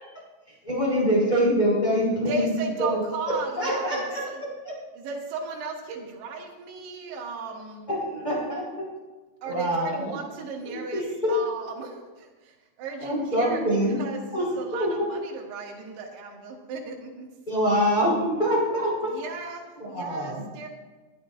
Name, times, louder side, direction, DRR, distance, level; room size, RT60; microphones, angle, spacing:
voice 1, 0.6-2.5 2.8-4.2 4.6-4.8 7.9-8.8 9.4-10.1 10.6-11.4 13.0-14.0 14.3-15.1 17.5-19.1 19.8-20.5, equal, 10° left, -5 dB, 4.2 m, -25 dB
voice 2, 2.3-4.4 4.9-7.9 9.4-17.3 19.1-20.7, right 3 dB, 70° right, -2 dB, 3.6 m, -36 dB
22.5 x 10.5 x 2.6 m, 1.2 s
omnidirectional pair, 4.9 m